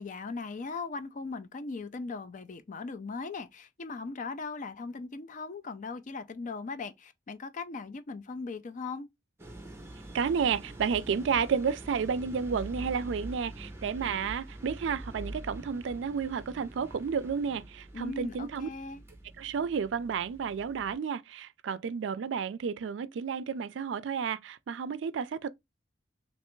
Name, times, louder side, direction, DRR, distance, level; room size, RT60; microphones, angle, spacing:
voice 1, 0.0-9.1 17.9-19.0, left 4 dB, 45° left, 0.4 m, -39 dB
sound 1, 9.4-20.9, right 1 dB, 15° right, 0.7 m, -45 dB
voice 2, 10.1-18.7 19.4-25.5, right 6 dB, 75° right, 0.4 m, -31 dB
3.3 x 3.0 x 3.0 m
head